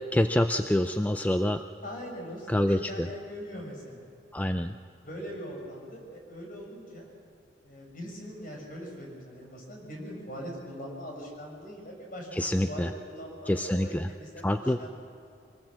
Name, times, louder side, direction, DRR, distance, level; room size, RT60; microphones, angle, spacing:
voice 1, 0.1-1.6 2.5-3.1 4.3-4.7 12.3-12.9 13.5-14.1 14.4-14.8, left 1 dB, 10° left, 8 dB, 0.5 m, -26 dB
voice 2, 1.8-4.0 4.3-4.5 5.0-7.1 7.6-14.9, equal, 50° left, 0 dB, 6.4 m, -41 dB
24.5 x 19.5 x 7.5 m, 2.6 s
head